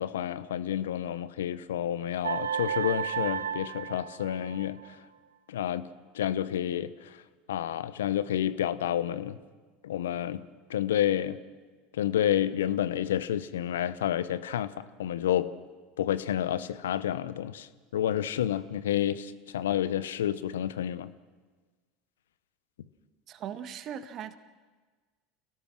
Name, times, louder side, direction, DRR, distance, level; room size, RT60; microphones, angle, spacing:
voice 1, 0.0-5.0 5.5-5.9 6.1-7.2 7.5-9.4 9.8-11.4 11.9-15.5 16.0-21.1, left 11 dB, 75° left, 1.0 m, -30 dB
sound 1, 2.2-4.9, right 8 dB, 85° right, 1.0 m, -33 dB
voice 2, 23.3-24.4, right 9 dB, 45° right, 1.7 m, -39 dB
28.5 x 17.5 x 6.2 m
hypercardioid pair, 80°, 0 cm